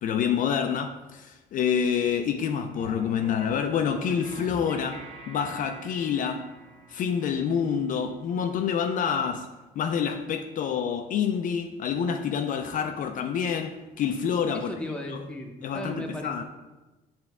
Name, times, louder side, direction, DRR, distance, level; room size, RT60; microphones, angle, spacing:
voice 1, 0.0-6.5 6.9-9.5 9.8-14.7 15.1-15.2 15.6-16.4, left 7 dB, 50° left, 0.4 m, -27 dB
sound 1, 2.7-9.4, right 1 dB, 35° right, 1.8 m, -46 dB
voice 2, 14.5-16.4, left 1 dB, 5° left, 0.8 m, -36 dB
7.9 x 3.4 x 3.5 m
cardioid pair, 110°, 17 cm